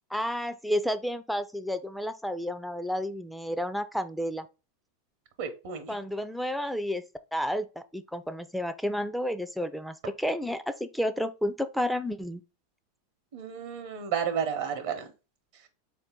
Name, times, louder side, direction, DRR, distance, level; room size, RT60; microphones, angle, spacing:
voice 1, 0.1-4.5 5.9-7.0 7.3-12.4, equal, ahead, 0.3 m, -31 dB
voice 2, 5.4-6.0 13.3-15.1, right 8 dB, 65° right, 0.8 m, -32 dB
4.0 x 2.7 x 3.6 m
hypercardioid pair, 110°, 0 cm